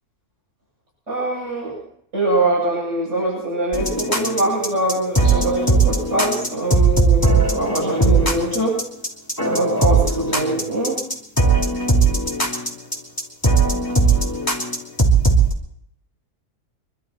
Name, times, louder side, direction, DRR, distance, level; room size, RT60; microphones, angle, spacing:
voice 1, 1.1-1.8 2.1-8.8 9.4-11.0, right 1 dB, 50° right, -6 dB, 8.5 m, -23 dB
sound 1, 3.7-15.5, right 3 dB, 15° left, 2.9 m, -18 dB
25.0 x 12.5 x 4.5 m, 0.70 s
omnidirectional pair, 1.6 m